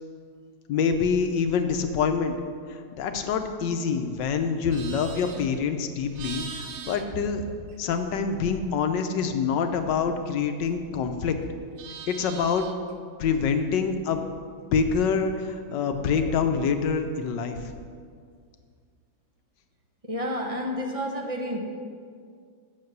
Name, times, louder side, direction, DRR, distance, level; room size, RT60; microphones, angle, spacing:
voice 1, 0.7-2.4 2.7-7.5 7.8-11.4 12.1-12.6 13.2-14.3 14.7-17.7, left 6 dB, 75° left, 7 dB, 1.4 m, -26 dB
Livestock farm animals working animals, 4.5-8.2 8.5-11.0 11.3-12.9, right 7 dB, 85° right, 1.5 m, -43 dB
voice 2, 20.0-21.6, equal, 30° right, 2 dB, 0.6 m, -30 dB
8.7 x 6.3 x 7.9 m, 2.1 s
omnidirectional pair, 2.0 m